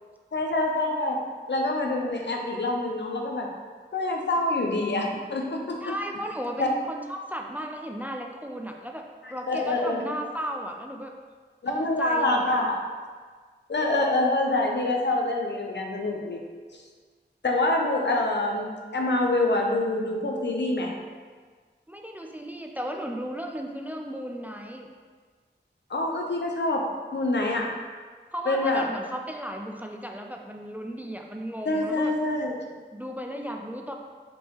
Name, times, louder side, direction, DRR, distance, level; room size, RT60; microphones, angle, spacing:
voice 1, 0.3-1.2 1.5-3.5 3.9-6.0 6.6-6.7 9.2-10.0 11.6-12.8 13.7-16.4 16.7-16.8 17.4-20.9 25.9-26.8 27.1-27.7 28.5-28.8 31.7-32.7, left 2 dB, 70° left, 0 dB, 0.6 m, -26 dB
voice 2, 5.8-11.1 11.6-12.7 21.9-24.9 28.3-32.1 32.9-33.9, equal, 10° right, 2 dB, 0.4 m, -35 dB
5.3 x 2.7 x 2.9 m, 1.5 s
wide cardioid pair, 40°, 19 cm